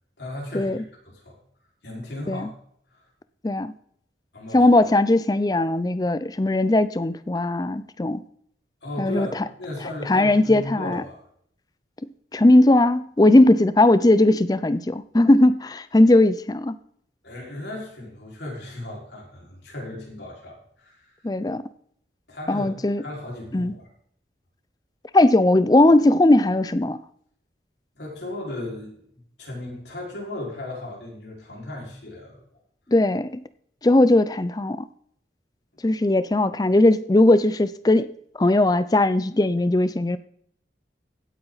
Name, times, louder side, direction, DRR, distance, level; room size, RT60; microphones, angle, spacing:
voice 1, 0.2-1.4 1.8-2.5 2.9-3.0 4.3-4.7 8.8-9.3 9.6-11.2 17.2-21.3 22.3-22.7 23.0-23.9 28.0-29.0 29.4-32.6, left 1 dB, 75° left, -3 dB, 4.9 m, -36 dB
voice 2, 4.5-8.2 9.0-9.3 10.1-11.0 12.3-16.8 21.2-21.6 22.5-23.0 23.5-23.7 25.1-27.0 32.9-33.4 33.8-34.8 35.8-38.1 38.4-40.2, left 2 dB, 20° left, 14 dB, 0.4 m, -18 dB
16.5 x 8.8 x 4.0 m, 0.67 s
head